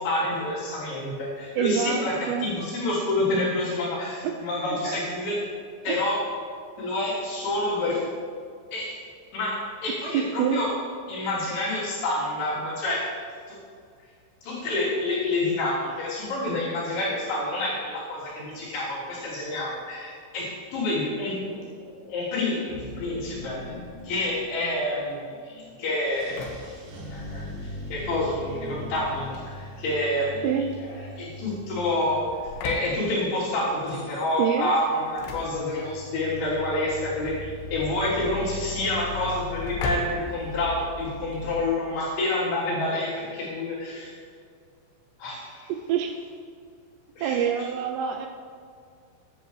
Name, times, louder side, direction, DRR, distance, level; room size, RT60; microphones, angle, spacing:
voice 1, 0.0-5.5 5.8-6.3 6.8-8.0 8.7-9.0 9.3-10.8 11.1-13.1 13.5-13.6 14.4-23.7 24.0-26.7 27.1-30.5 30.8-44.1 45.2-45.7 47.2-47.5, left 2 dB, 60° left, -8 dB, 5.2 m, -28 dB
voice 2, 1.6-2.5 4.2-4.3 4.8-5.0 5.9-6.1 10.1-10.6 30.4-30.7 34.4-34.7 45.9-46.1 47.2-48.3, right 8 dB, 85° right, 3 dB, 2.4 m, -26 dB
sound 1, 22.7-24.9 25.9-30.2 31.9-32.0 32.7-32.8 33.9-34.4 35.1-41.7, left 3 dB, 60° right, 3.7 m, -40 dB
Engine / Slam, 26.0-41.1, left 2 dB, 80° left, 3.7 m, -40 dB
14.5 x 11.0 x 3.2 m, 2.1 s
omnidirectional pair, 5.5 m